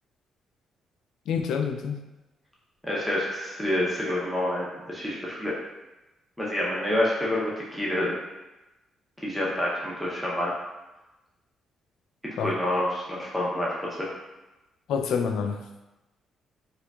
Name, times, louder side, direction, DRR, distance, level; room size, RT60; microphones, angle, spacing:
voice 1, 1.3-2.0 12.4-12.5 14.9-15.6, left 6 dB, 80° left, 5 dB, 0.3 m, -27 dB
voice 2, 2.8-5.5 6.4-8.1 9.2-10.5 12.4-14.1, left 1 dB, 5° left, -6 dB, 0.8 m, -28 dB
4.3 x 2.3 x 2.4 m, 1.0 s
cardioid pair, 90°, 0 cm